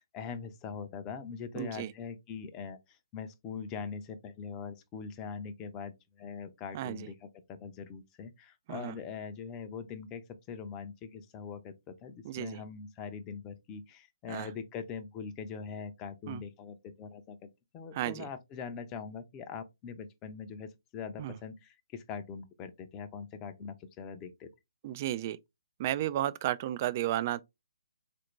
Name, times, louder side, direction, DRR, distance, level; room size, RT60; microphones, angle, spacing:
voice 1, 0.0-17.5 17.7-24.5, left 6 dB, 20° left, 0.5 m, -42 dB
voice 2, 1.6-1.9 6.7-7.1 8.7-9.0 12.2-12.6 14.3-14.5 16.3-16.4 17.9-18.3 21.2-21.3 24.8-25.4 25.8-27.4, right 13 dB, 35° right, 0.3 m, -33 dB
4.2 x 2.6 x 3.0 m
figure-of-eight pair, 135°, 2 cm